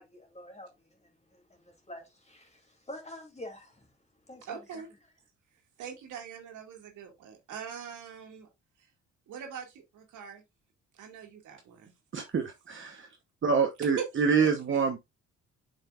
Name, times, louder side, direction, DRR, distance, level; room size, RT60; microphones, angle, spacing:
voice 1, 0.0-3.9 4.3-4.8, left 1 dB, 20° left, 2.8 m, -47 dB
voice 2, 4.5-4.9 5.8-8.5 9.3-10.4 11.0-11.9 14.0-14.1 14.4-14.5, right 8 dB, 80° right, 2.1 m, -42 dB
voice 3, 12.1-13.1 13.4-15.0, right 5 dB, 40° right, 1.0 m, -26 dB
7.4 x 5.3 x 2.4 m
cardioid pair, 90°, 30 cm